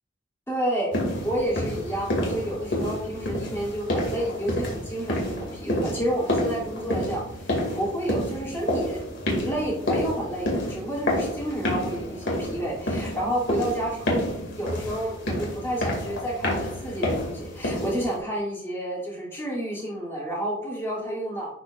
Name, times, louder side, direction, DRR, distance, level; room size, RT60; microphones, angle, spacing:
voice 1, 0.5-0.9 1.2-21.5, equal, 10° left, -6 dB, 2.5 m, -30 dB
sound 1, 0.9-18.2, left 1 dB, 65° left, 2.1 m, -29 dB
11.0 x 5.1 x 2.4 m, 0.76 s
head